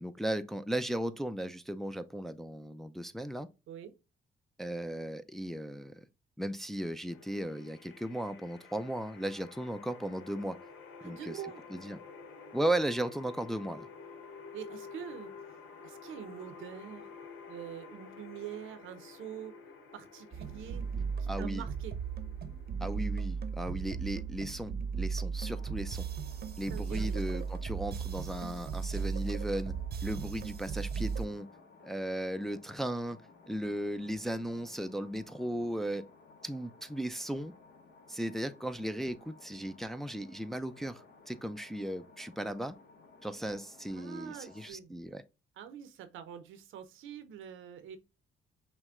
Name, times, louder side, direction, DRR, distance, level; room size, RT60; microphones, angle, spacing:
voice 1, 0.0-3.5 4.6-6.0 6.4-10.6 11.0-11.4 11.7-12.0 12.5-13.9 21.3-21.6 22.8-26.1 26.6-29.7 30.0-31.5 31.8-33.2 33.5-36.0 36.4-37.5 38.1-42.8 43.2-45.2, right 1 dB, ahead, 0.4 m, -36 dB
sound 1, 7.1-26.1, left 5 dB, 85° left, 1.0 m, -51 dB
voice 2, 11.0-11.7 14.5-15.3 15.8-17.1 17.5-19.6 19.9-20.9 21.2-22.0 26.5-27.4 43.9-44.9 45.6-48.0, right 9 dB, 85° right, 0.7 m, -45 dB
sound 2, 20.3-31.3, right 6 dB, 50° right, 0.7 m, -36 dB
sound 3, 25.4-44.7, left 3 dB, 60° left, 1.0 m, -58 dB
5.9 x 2.2 x 3.6 m
cardioid pair, 90°, 20 cm